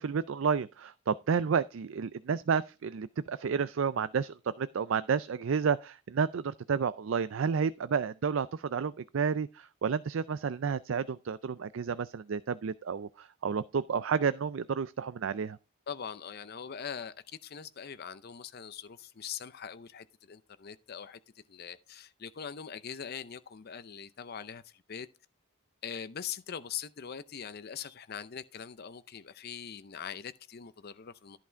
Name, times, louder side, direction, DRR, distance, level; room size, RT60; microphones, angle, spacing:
voice 1, 0.0-15.6, right 6 dB, 65° right, 0.4 m, -31 dB
voice 2, 15.9-17.1 17.4-21.2 21.5-25.1 25.8-31.4, left 7 dB, 50° left, 0.5 m, -42 dB
11.0 x 5.9 x 4.5 m
head